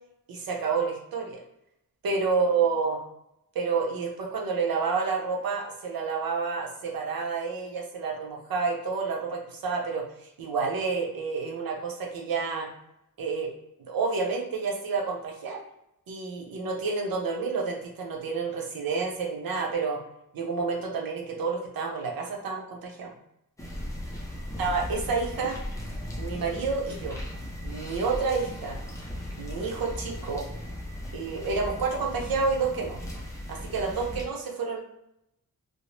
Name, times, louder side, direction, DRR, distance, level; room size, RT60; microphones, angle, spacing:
voice 1, 0.3-1.4 2.0-3.0 3.5-12.7 13.2-13.5 13.8-15.6 16.1-20.0 20.3-23.1 24.6-25.6 26.2-27.2 27.6-28.8 29.4-30.4 31.1-33.0 33.5-34.8, right 4 dB, 80° right, 0 dB, 0.7 m, -29 dB
sound 1, 23.6-34.3, equal, 10° left, 0.4 m, -37 dB
2.6 x 2.0 x 3.0 m, 0.82 s
wide cardioid pair, 165°, 35 cm